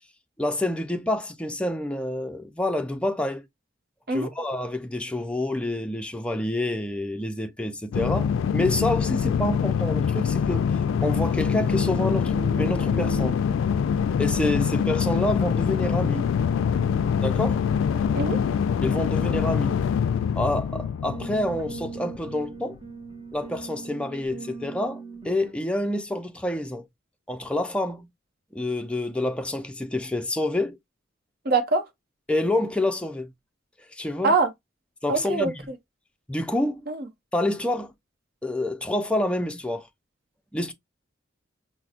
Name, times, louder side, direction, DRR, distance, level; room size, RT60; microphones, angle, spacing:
voice 1, 0.4-3.5 4.1-10.7 11.0-13.4 14.2-16.3 17.2-17.6 18.8-19.8 20.4-22.8 23.3-26.9 27.3-28.1 28.5-30.8 32.3-33.3 33.9-34.4 35.0-35.5 36.3-36.9 37.3-37.9 38.4-39.9 40.5-40.7, left 1 dB, 5° left, 0.4 m, -28 dB
sound 1, 7.9-22.3, left 7 dB, 80° left, 0.3 m, -24 dB
sound 2, 10.4-25.5, right 5 dB, 20° right, 1.0 m, -42 dB
voice 2, 31.4-31.8 34.2-34.5 35.1-35.5 36.9-37.0, right 3 dB, 50° right, 0.7 m, -23 dB
5.6 x 2.0 x 2.4 m
head